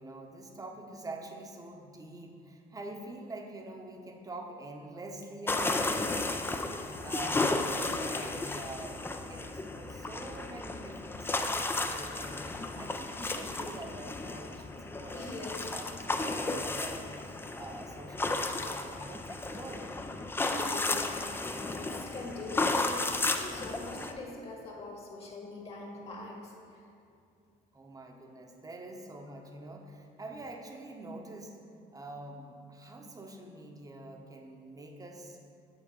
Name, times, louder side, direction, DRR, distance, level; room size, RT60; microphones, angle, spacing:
voice 1, 0.0-12.4 12.8-19.9 27.7-31.6 31.9-35.4, right 2 dB, 20° right, 2 dB, 0.9 m, -45 dB
sound 1, 5.5-24.1, left 2 dB, 15° left, 0.4 m, -33 dB
voice 2, 15.1-15.7 20.3-26.5, left 2 dB, 35° left, -1 dB, 1.5 m, -42 dB
9.0 x 3.9 x 5.4 m, 2.4 s
cardioid pair, 110°, 17 cm